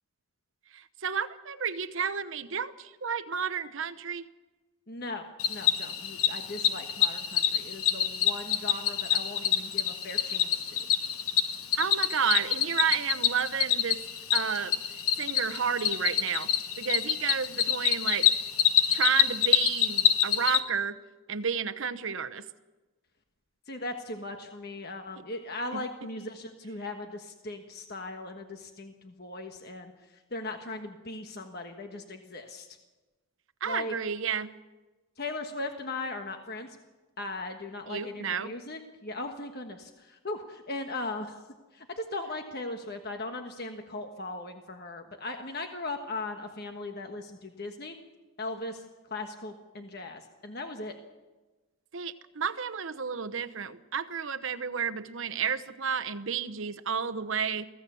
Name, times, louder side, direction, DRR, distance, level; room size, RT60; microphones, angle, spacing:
voice 1, 0.7-4.3 11.7-14.0 14.3-14.7 15.2-16.5 16.8-18.3 18.9-21.0 21.3-22.5 33.6-34.5 37.9-38.5 51.9-57.7, right 6 dB, 65° right, 10 dB, 0.9 m, -31 dB
voice 2, 4.9-10.8 23.7-32.7 33.6-33.9 35.2-36.7 37.2-41.4 41.7-48.0 48.4-48.8 49.1-50.9, left 2 dB, 45° left, 5 dB, 1.3 m, -38 dB
Cricket, 5.4-20.6, left 10 dB, 85° left, 1.2 m, -27 dB
24.0 x 16.0 x 7.0 m, 1.2 s
head